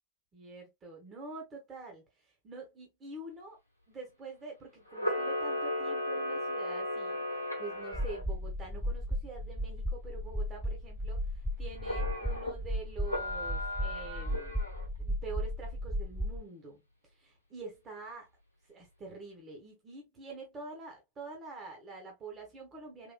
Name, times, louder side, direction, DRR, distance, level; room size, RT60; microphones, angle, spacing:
voice 1, 0.3-3.6 3.9-7.3 7.6-14.6 15.0-18.3 18.7-23.1, right 3 dB, 25° right, 1.2 m, -46 dB
Camera, 4.9-8.2 11.8-12.5 13.0-14.9, left 1 dB, 85° left, 0.9 m, -35 dB
sound 1, 7.9-16.4, equal, 5° left, 0.3 m, -35 dB
3.9 x 3.0 x 2.2 m
figure-of-eight pair, 90°, 0 cm